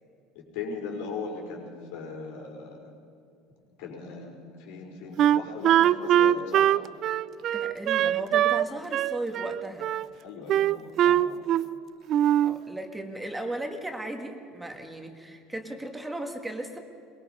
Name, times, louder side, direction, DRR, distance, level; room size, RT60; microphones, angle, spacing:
voice 1, 0.3-2.9 3.8-6.7 10.2-11.4, left 4 dB, 80° left, 0 dB, 5.2 m, -38 dB
Wind instrument woodwind instrument, 5.2-8.6 8.9-10.1 10.5-11.8 12.1-12.6, right 11 dB, 40° right, 0.4 m, -22 dB
voice 2, 7.5-9.9 12.4-16.8, right 1 dB, 5° right, 4 dB, 1.7 m, -36 dB
23.0 x 21.5 x 5.5 m, 2.6 s
cardioid pair, 150°, 0 cm